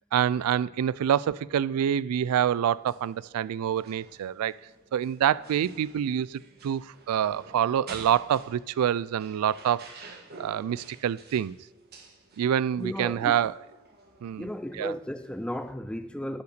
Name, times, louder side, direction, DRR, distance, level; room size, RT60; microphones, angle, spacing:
voice 1, 0.1-4.5 4.9-11.6 12.4-13.5 14.2-14.9, right 9 dB, 85° right, 0.3 m, -27 dB
sound 1, 2.7-15.7, right 3 dB, 45° right, 1.6 m, -51 dB
voice 2, 12.8-13.4 14.4-16.4, equal, 5° left, 0.3 m, -34 dB
10.0 x 5.7 x 6.6 m
head